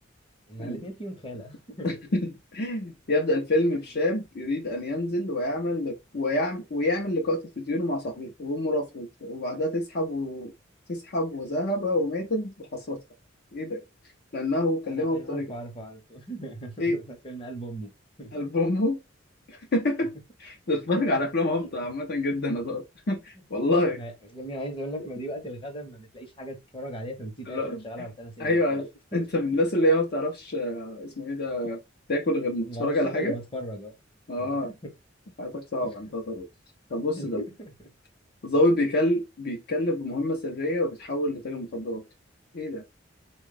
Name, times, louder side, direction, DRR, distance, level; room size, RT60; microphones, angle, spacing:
voice 1, 0.5-1.9 14.9-17.9 18.2-18.5 21.6-21.7 23.4-23.5 23.9-28.8 29.1-29.3 32.7-33.9 34.4-34.9 35.8-36.1 37.1-37.9, equal, 30° left, 0.9 m, -38 dB
voice 2, 1.8-10.5 10.9-13.0 13.5-13.8 14.3-15.5 16.8-17.0 18.3-19.0 19.5-20.1 20.4-24.0 27.5-28.1 28.4-31.8 32.1-33.4 34.3-34.7 35.4-36.5 36.9-37.4 38.4-42.0 42.5-42.8, left 1 dB, 55° left, 0.6 m, -27 dB
3.5 x 2.3 x 3.7 m
head